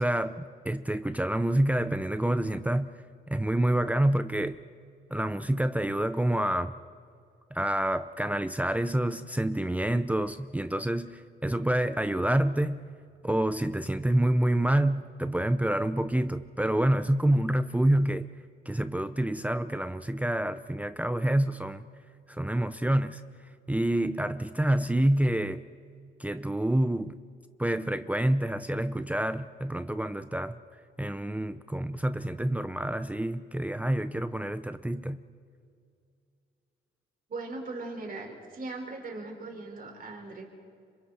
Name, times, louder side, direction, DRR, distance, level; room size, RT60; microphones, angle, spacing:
voice 1, 0.0-2.9 3.3-4.6 5.1-6.7 7.5-12.9 13.2-18.3 18.7-21.8 22.3-23.2 23.7-25.6 26.2-27.2 27.6-30.6 31.0-35.2, right 1 dB, 5° right, 11 dB, 0.6 m, -27 dB
voice 2, 37.3-40.4, right 3 dB, 45° right, 1 dB, 5.1 m, -39 dB
28.5 x 26.0 x 4.4 m, 2.3 s
cardioid pair, 90°, 20 cm